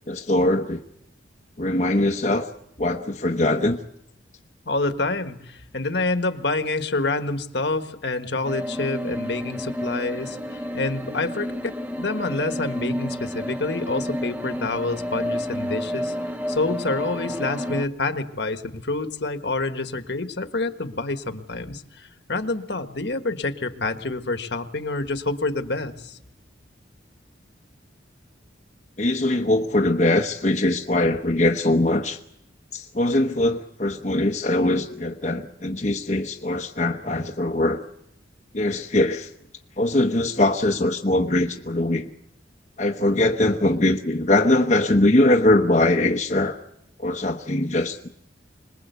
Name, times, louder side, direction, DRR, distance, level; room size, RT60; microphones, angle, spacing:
voice 1, 0.1-0.8 1.6-2.5 2.8-3.8 29.0-32.2 32.7-37.8 38.5-39.3 39.8-42.1 42.8-46.6 47.0-48.1, left 1 dB, 40° left, 0.9 m, -21 dB
voice 2, 4.6-16.1 16.5-26.2, left 2 dB, 60° left, 1.4 m, -27 dB
sound 1, 8.4-17.9, equal, 10° right, 0.9 m, -30 dB
26.0 x 20.5 x 8.2 m
head